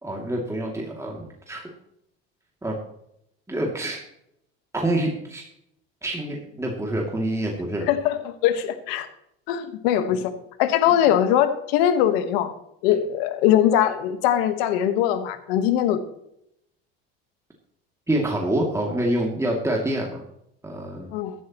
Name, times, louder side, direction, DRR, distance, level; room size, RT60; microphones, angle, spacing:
voice 1, 0.0-1.6 2.6-2.8 3.5-4.0 4.7-5.4 6.0-7.9 18.1-20.2 20.6-21.1, right 1 dB, 10° right, -1 dB, 2.6 m, -26 dB
voice 2, 7.9-9.1 9.5-10.3 10.6-12.5 12.8-16.0 21.1-21.3, left 10 dB, 80° left, 10 dB, 1.4 m, -21 dB
15.5 x 11.5 x 3.1 m, 0.77 s
supercardioid pair, 85°, 30 cm